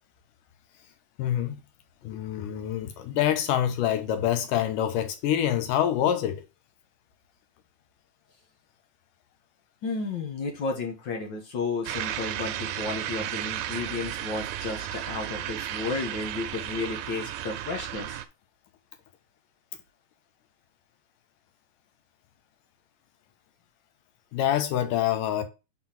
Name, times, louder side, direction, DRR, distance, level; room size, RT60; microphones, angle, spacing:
voice 1, 1.2-1.6 2.0-6.4 24.3-25.4, left 11 dB, 85° left, 2.6 m, -26 dB
voice 2, 9.8-18.2, left 3 dB, 50° left, 1.5 m, -33 dB
sound 1, 11.9-18.3, right 12 dB, 80° right, 2.1 m, -34 dB
5.5 x 4.3 x 5.7 m
omnidirectional pair, 3.6 m